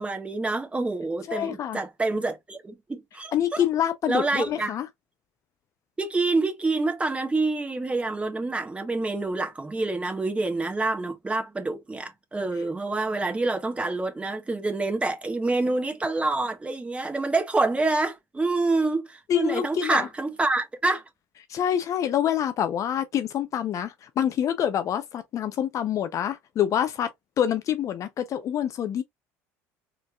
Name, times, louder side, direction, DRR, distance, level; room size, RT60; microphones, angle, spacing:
voice 1, 0.0-3.6 4.1-4.7 6.0-21.0, right 3 dB, 15° right, 1.3 m, -27 dB
voice 2, 1.3-1.8 3.3-4.9 19.3-20.1 21.5-27.1 27.4-29.0, left 10 dB, 50° left, 0.6 m, -26 dB
4.0 x 3.3 x 2.3 m
supercardioid pair, 80°, 7 cm